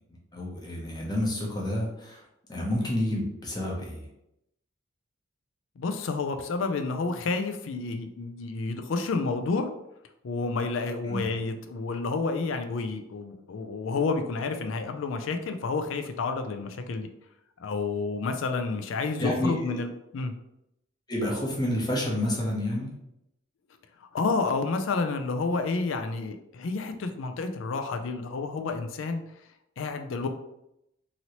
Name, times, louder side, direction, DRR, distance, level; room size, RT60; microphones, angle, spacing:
voice 1, 0.3-2.2 2.5-4.1 11.0-11.2 19.2-19.8 21.1-22.9, left 1 dB, 20° left, -3 dB, 0.8 m, -29 dB
voice 2, 5.8-9.7 10.2-17.1 17.6-20.3 24.0-29.2 29.8-30.3, left 4 dB, 70° left, 7 dB, 0.4 m, -30 dB
2.9 x 2.7 x 2.9 m, 0.83 s
head